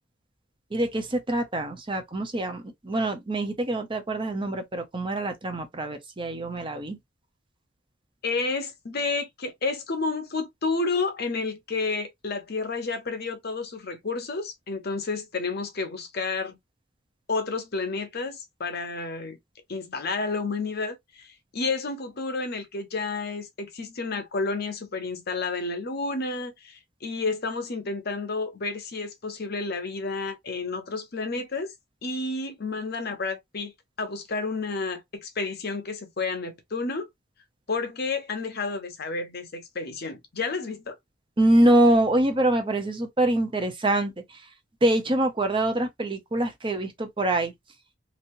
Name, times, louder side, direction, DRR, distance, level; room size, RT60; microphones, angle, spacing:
voice 1, 0.7-7.0 41.4-44.4 44.8-47.5, right 1 dB, 25° right, 0.7 m, -24 dB
voice 2, 8.2-16.6 17.3-19.4 19.7-31.7 32.0-33.7 34.0-37.1 37.7-41.0, left 3 dB, 50° left, 0.8 m, -30 dB
3.0 x 2.7 x 2.6 m
head